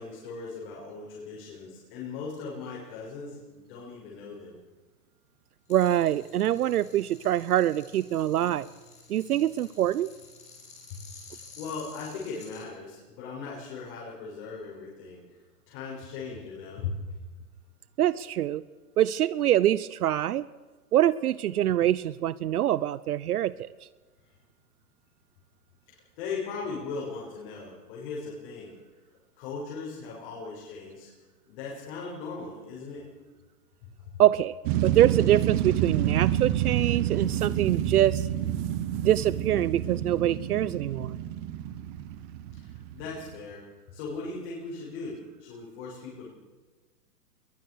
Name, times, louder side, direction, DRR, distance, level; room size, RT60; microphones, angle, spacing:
voice 1, 0.0-4.6 10.9-11.0 11.3-15.2 15.7-17.0 25.9-28.7 29.4-31.1 31.5-33.1 42.5-43.6 43.9-46.3, left 4 dB, 35° left, -4 dB, 6.9 m, -38 dB
sound 1, 5.7-12.7, left 4 dB, 15° left, 6.9 m, -51 dB
voice 2, 5.7-8.7 9.1-10.1 18.0-18.6 19.0-20.5 20.9-23.5 34.2-34.5 34.8-38.3 39.0-41.2, right 12 dB, 70° right, 18 dB, 0.8 m, -24 dB
sound 2, 34.6-43.3, right 11 dB, 15° right, 0.6 m, -28 dB
22.5 x 21.0 x 6.5 m, 1.3 s
hypercardioid pair, 160°, 47 cm